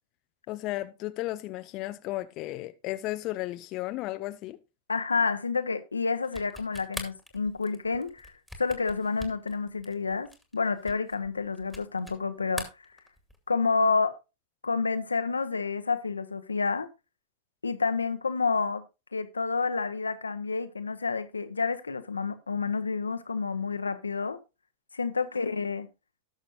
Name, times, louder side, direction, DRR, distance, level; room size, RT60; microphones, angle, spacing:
voice 1, 0.5-4.6, left 17 dB, 40° left, 0.5 m, -34 dB
voice 2, 4.9-8.3 8.6-12.7 13.5-14.2 14.6-16.9 17.6-18.8 19.1-24.4 24.9-25.9, left 4 dB, 75° left, 0.9 m, -29 dB
sound 1, 6.2-12.2 12.5-13.5, left 1 dB, ahead, 2.2 m, -43 dB
18.0 x 6.4 x 2.5 m
figure-of-eight pair, 90°, 0 cm